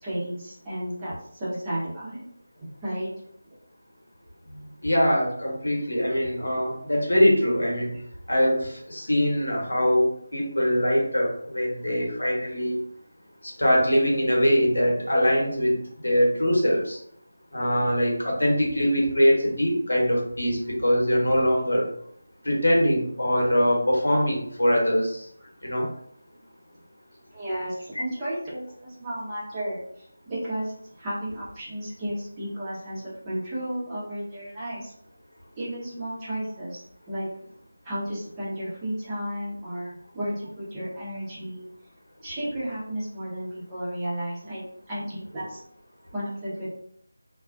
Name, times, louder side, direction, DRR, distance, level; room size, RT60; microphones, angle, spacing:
voice 1, 0.0-2.2 2.6-3.1 27.3-34.9 35.6-37.3 37.8-41.7 42.2-45.6 46.1-46.7, right 1 dB, 15° right, -9 dB, 0.8 m, -33 dB
voice 2, 4.8-7.9 8.3-12.8 13.6-15.7 16.0-17.0 17.5-21.9 22.4-25.2 25.6-25.9, equal, 70° left, -2 dB, 1.0 m, -22 dB
2.3 x 2.3 x 2.4 m, 0.66 s
figure-of-eight pair, 160°, 0 cm